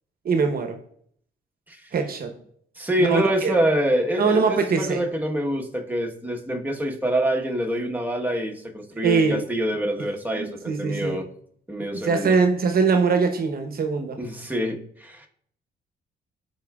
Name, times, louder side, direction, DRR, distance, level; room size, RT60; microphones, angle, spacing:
voice 1, 0.2-0.8 1.9-2.3 3.0-3.6 4.2-5.0 9.0-9.4 10.3-11.2 11.9-14.2, right 5 dB, 50° right, 6 dB, 0.9 m, -22 dB
voice 2, 2.8-11.2 11.7-12.4 14.2-15.3, equal, 10° right, 1 dB, 1.1 m, -26 dB
13.0 x 4.5 x 2.3 m, 0.64 s
cardioid pair, 90°, 20 cm